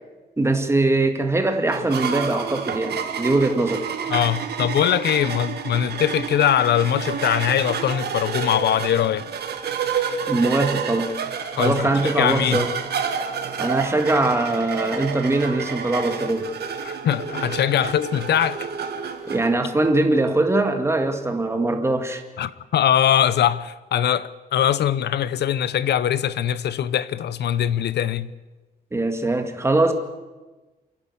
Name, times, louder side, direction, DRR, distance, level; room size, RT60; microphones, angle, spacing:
voice 1, 0.4-3.9 10.3-11.2 11.6-12.7 13.6-16.5 17.7-17.9 19.3-22.2 28.9-29.9, right 2 dB, 15° right, 2.0 m, -22 dB
guitar string rubbed with coin, 1.7-19.5, right 7 dB, 75° right, 2.0 m, -29 dB
voice 2, 4.1-9.2 11.5-12.7 16.8-18.7 22.4-28.3, left 10 dB, 90° left, 0.8 m, -22 dB
28.5 x 11.0 x 8.5 m
wide cardioid pair, 135°, 17 cm